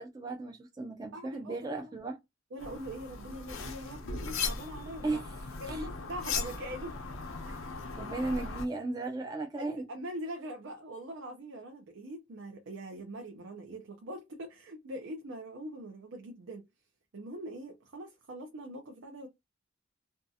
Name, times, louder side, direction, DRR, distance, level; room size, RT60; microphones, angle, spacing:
voice 1, 0.0-2.2 5.0-5.3 5.7-5.9 8.0-9.8, right 2 dB, 20° right, 0.4 m, -35 dB
voice 2, 1.1-1.9 2.5-5.2 5.6-6.9 7.4-7.7 8.0-8.2 9.6-16.6 17.1-19.3, right 1 dB, 75° right, 0.5 m, -43 dB
sound 1, 2.6-8.7, left 4 dB, 85° left, 0.6 m, -38 dB
2.6 x 2.3 x 2.6 m
head